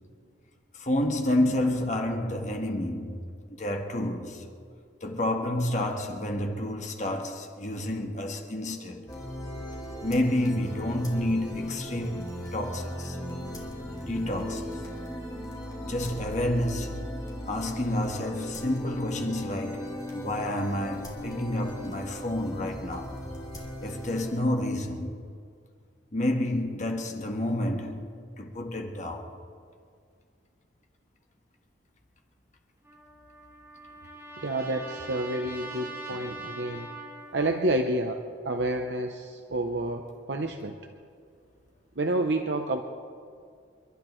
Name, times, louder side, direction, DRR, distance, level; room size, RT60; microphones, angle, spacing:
voice 1, 0.7-3.2 3.5-4.5 5.0-9.1 10.0-13.2 14.0-14.8 15.8-17.0 17.5-23.2 23.8-25.1 26.1-29.4, left 1 dB, 40° left, 1.4 m, -29 dB
sound 1, 9.1-24.4, equal, 20° left, 2.6 m, -38 dB
Trumpet, 32.8-37.7, right 2 dB, 15° right, 4.1 m, -42 dB
voice 2, 34.4-36.9 37.3-40.8 42.0-42.8, right 1 dB, 65° right, 0.8 m, -29 dB
30.0 x 12.0 x 3.2 m
head